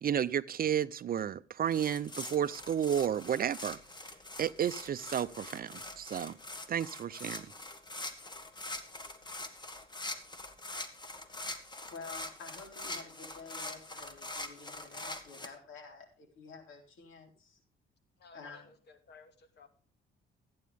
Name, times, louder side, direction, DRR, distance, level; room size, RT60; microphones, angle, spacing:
voice 1, 0.0-3.8 4.4-6.4 6.7-7.5, right 9 dB, 45° right, 16 dB, 0.6 m, -32 dB
sound 1, 1.7-15.5, left 2 dB, 20° left, 1.7 m, -44 dB
voice 2, 11.9-17.6 18.3-18.6, left 4 dB, 75° left, 2 dB, 3.9 m, -50 dB
voice 3, 18.2-19.7, left 4 dB, 55° left, 6 dB, 2.5 m, -57 dB
14.5 x 9.5 x 3.5 m, 0.38 s
cardioid pair, 90°, 20 cm